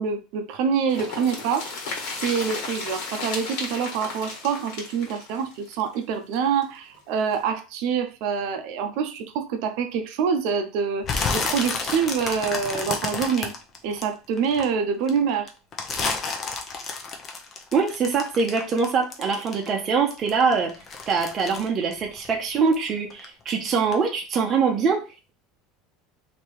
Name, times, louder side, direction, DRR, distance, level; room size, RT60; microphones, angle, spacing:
voice 1, 0.0-1.7 2.2-13.5 13.8-15.5, right 6 dB, 55° right, 7 dB, 0.7 m, -26 dB
sound 1, 0.9-6.6 6.9-7.0 7.3-7.4, left 4 dB, 60° left, 1.6 m, -34 dB
sound 2, 11.0-14.6 15.1-19.8 20.1-22.8 23.1-23.5 23.9-24.0, left 4 dB, 25° left, 0.7 m, -30 dB
voice 2, 17.7-20.7 21.1-25.0, right 5 dB, 25° right, 0 dB, 0.8 m, -23 dB
3.4 x 2.9 x 4.5 m, 0.31 s
cardioid pair, 165°, 0 cm